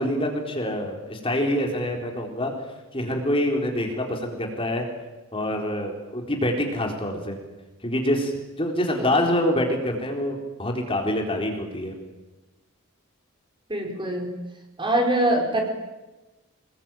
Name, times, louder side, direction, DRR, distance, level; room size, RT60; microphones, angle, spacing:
voice 1, 0.0-2.5 2.9-4.9 5.3-7.4 7.8-8.3 8.6-11.9, left 1 dB, 25° left, 2 dB, 4.0 m, -26 dB
voice 2, 13.7-14.3 14.8-15.7, right 1 dB, 20° right, 3 dB, 4.8 m, -23 dB
27.0 x 21.5 x 9.2 m, 1.1 s
head